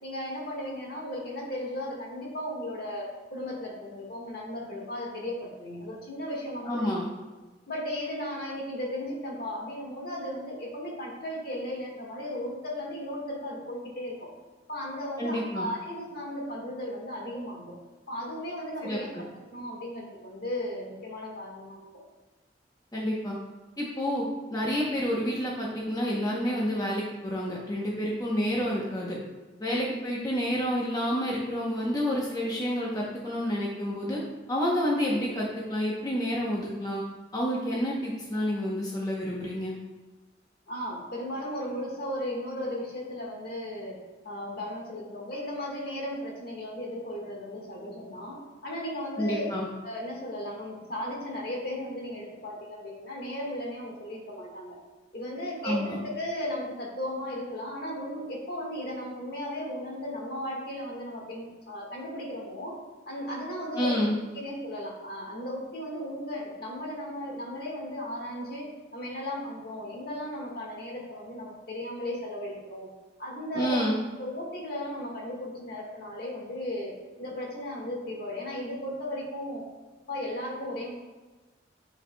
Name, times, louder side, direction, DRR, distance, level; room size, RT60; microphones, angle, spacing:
voice 1, 0.0-6.9 7.7-14.3 14.7-17.8 18.1-19.3 19.5-21.8 29.7-29.9 40.7-44.0 44.2-49.5 49.8-54.8 55.1-62.8 63.1-64.0 64.3-72.9 73.2-73.9 74.2-79.6 80.1-80.9, left 1 dB, 55° left, -2 dB, 1.6 m, -36 dB
voice 2, 6.6-7.1 15.2-15.7 18.8-19.2 22.9-23.4 23.8-24.2 24.5-29.2 29.6-34.2 34.5-37.0 37.3-39.7 49.2-49.7 55.6-56.0 63.7-64.1 73.6-74.0, equal, 20° left, -4 dB, 0.8 m, -29 dB
10.0 x 4.8 x 2.3 m, 1.2 s
head